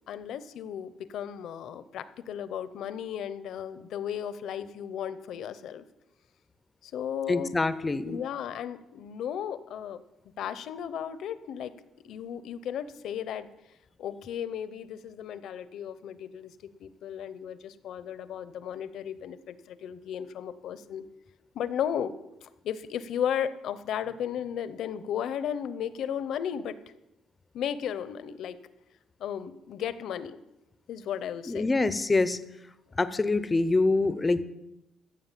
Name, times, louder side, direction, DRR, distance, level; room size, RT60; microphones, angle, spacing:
voice 1, 0.1-5.8 6.8-7.5 8.0-10.0 10.4-11.7 12.0-13.5 14.0-16.5 16.8-21.0 21.5-22.1 22.4-26.8 27.5-28.6 29.2-30.4 30.9-31.7, left 9 dB, 60° left, 14 dB, 0.7 m, -35 dB
voice 2, 7.3-8.2 31.5-32.4 33.0-34.4, left 3 dB, 15° left, 14 dB, 0.6 m, -25 dB
15.0 x 7.6 x 7.5 m, 0.94 s
cardioid pair, 175°, 0 cm